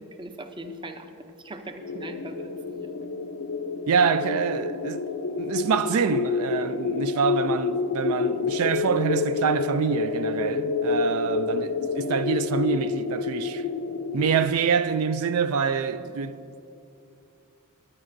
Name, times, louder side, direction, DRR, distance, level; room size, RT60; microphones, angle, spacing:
voice 1, 0.2-1.1 1.4-2.9, right 1 dB, 20° right, 0.5 m, -39 dB
sound 1, 1.8-14.5, left 4 dB, 80° left, 0.6 m, -28 dB
voice 2, 3.9-5.1 5.4-13.7 14.1-16.6, right 6 dB, 75° right, 0.3 m, -26 dB
20.0 x 9.7 x 2.6 m
head